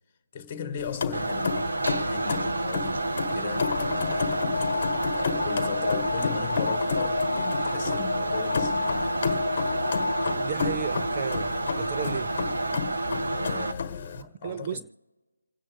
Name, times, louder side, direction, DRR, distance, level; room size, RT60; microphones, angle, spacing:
voice 1, 0.3-9.4 11.5-11.7 13.3-14.8, left 7 dB, 20° left, 2.0 m, -38 dB
sound 1, 0.8-14.2, left 6 dB, 35° left, 1.5 m, -32 dB
sound 2, 1.1-13.7, right 2 dB, 70° right, 1.3 m, -30 dB
Alarm, 3.6-10.7, left 4 dB, 50° left, 0.4 m, -32 dB
voice 2, 10.4-12.3 14.2-14.8, right 8 dB, 25° right, 0.4 m, -34 dB
27.5 x 9.8 x 3.6 m
figure-of-eight pair, 165°, 0 cm